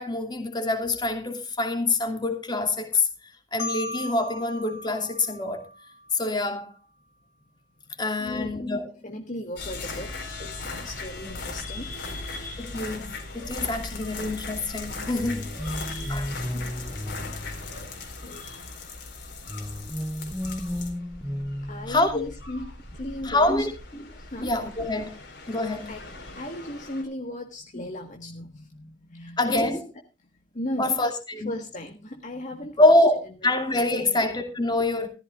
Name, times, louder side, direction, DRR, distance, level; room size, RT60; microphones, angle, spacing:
voice 1, 0.0-3.1 3.5-5.7 6.1-6.7 8.0-8.8 12.7-15.5 16.1-16.3 21.9-22.2 23.2-24.1 24.4-25.2 25.5-26.0 29.4-29.8 30.8-31.5 32.8-35.1, left 2 dB, 25° left, 2.5 m, -25 dB
Marimba xylophone, 3.6-6.4, left 1 dB, 90° left, 2.0 m, -37 dB
voice 2, 8.2-8.5 8.8-12.8 13.2-13.3 15.6-17.0 18.1-18.8 21.6-23.7 24.3-24.6 25.8-29.8 30.5-31.1 31.4-32.9 33.4-33.5 33.9-34.2, left 1 dB, 45° left, 1.6 m, -37 dB
sound 1, 9.6-27.0, left 3 dB, 70° left, 4.3 m, -38 dB
sound 2, 15.2-18.3 19.5-22.4, equal, 5° left, 0.5 m, -34 dB
15.0 x 14.0 x 2.4 m
head